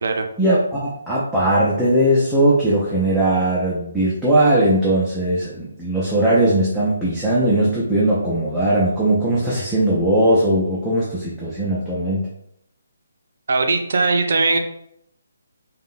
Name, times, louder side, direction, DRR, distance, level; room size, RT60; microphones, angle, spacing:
voice 1, 0.4-12.2, right 1 dB, ahead, -10 dB, 0.5 m, -19 dB
voice 2, 13.5-14.6, right 3 dB, 60° right, 5 dB, 0.4 m, -19 dB
3.5 x 2.1 x 2.5 m, 0.74 s
hypercardioid pair, 160°, 0 cm